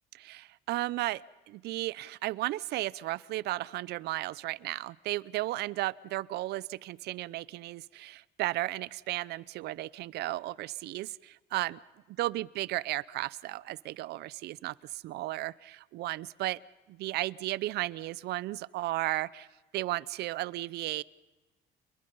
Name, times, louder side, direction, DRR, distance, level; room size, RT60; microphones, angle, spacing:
voice 1, 0.1-11.8 12.2-16.6 16.9-19.5 19.7-21.0, right 17 dB, 75° right, 21 dB, 0.6 m, -34 dB
29.5 x 21.0 x 5.5 m, 1.2 s
cardioid pair, 110°, 17 cm